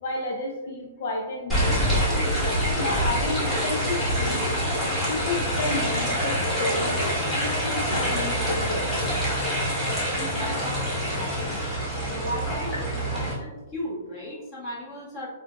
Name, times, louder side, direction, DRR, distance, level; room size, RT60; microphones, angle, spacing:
voice 1, 0.0-2.0 2.6-4.5 5.1-7.0 7.3-9.2, left 3 dB, 60° left, 0 dB, 0.4 m, -32 dB
sound 1, 1.5-13.3, equal, 10° left, 1.2 m, -26 dB
voice 2, 10.3-11.7 12.0-15.3, equal, 30° left, -6 dB, 1.3 m, -36 dB
3.7 x 2.4 x 2.2 m, 1.2 s
hypercardioid pair, 140°, 0 cm